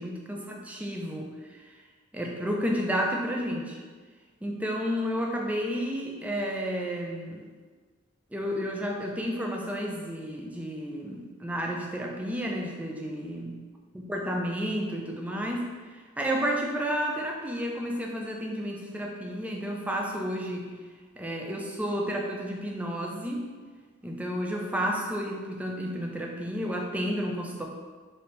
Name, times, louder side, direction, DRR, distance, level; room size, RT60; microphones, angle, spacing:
voice 1, 0.0-1.3 1.6-1.8 2.1-3.8 4.4-7.4 8.3-13.5 13.9-15.7 16.2-20.7 21.2-23.5 24.0-27.7, equal, 5° right, 0 dB, 0.3 m, -31 dB
3.2 x 2.6 x 4.1 m, 1.5 s
head